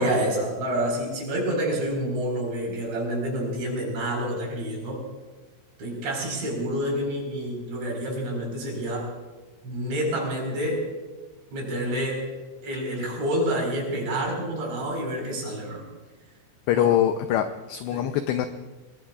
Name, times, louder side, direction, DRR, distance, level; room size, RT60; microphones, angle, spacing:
voice 1, 0.0-5.0 5.8-9.1 9.6-10.9 11.5-12.3 12.6-15.8 16.7-16.9 17.9-18.1, right 1 dB, 60° right, 0 dB, 6.6 m, -28 dB
voice 2, 16.7-18.5, left 11 dB, 85° left, 7 dB, 2.4 m, -23 dB
29.0 x 20.0 x 2.4 m, 1.2 s
omnidirectional pair, 5.7 m